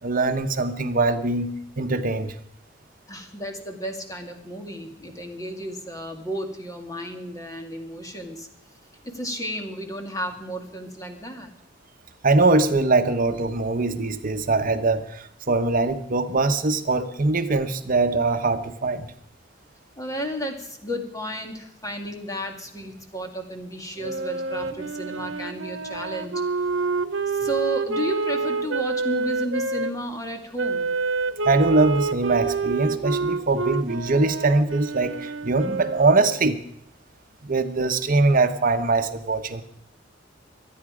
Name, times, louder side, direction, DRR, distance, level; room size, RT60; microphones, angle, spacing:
voice 1, 0.0-2.3 12.2-19.1 31.4-36.6 37.4-39.6, right 3 dB, 45° right, 9 dB, 1.0 m, -22 dB
voice 2, 3.1-8.5 9.0-11.5 20.0-26.3 27.3-30.9, equal, 20° left, 4 dB, 2.2 m, -33 dB
Wind instrument woodwind instrument, 24.0-29.9 30.6-36.4, right 4 dB, 85° right, 0.9 m, -28 dB
24.5 x 9.6 x 5.0 m, 0.73 s
head